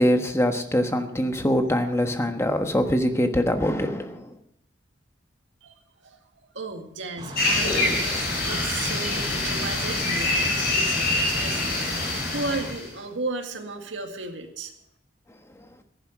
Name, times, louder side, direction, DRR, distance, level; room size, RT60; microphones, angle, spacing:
voice 1, 0.0-4.3, equal, 15° left, 1.3 m, -23 dB
voice 2, 6.5-12.0 12.3-14.7, right 3 dB, 85° right, 2.0 m, -34 dB
Kitchen hood, 7.2-12.7, equal, 25° right, 4.8 m, -37 dB
sound 1, 7.4-12.9, left 2 dB, 55° left, 4.6 m, -25 dB
14.5 x 11.0 x 6.3 m
head